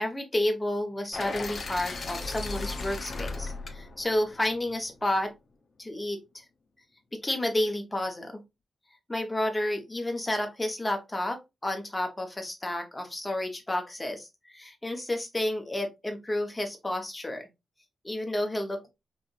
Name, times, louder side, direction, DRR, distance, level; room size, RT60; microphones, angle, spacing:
voice 1, 0.0-5.3 5.8-6.4 7.1-8.4 9.1-17.5 18.0-18.9, left 1 dB, 15° left, 1.2 m, -31 dB
sound 1, 1.1-5.2, left 3 dB, 45° left, 0.8 m, -37 dB
5.7 x 2.5 x 2.6 m
cardioid pair, 100°, 0 cm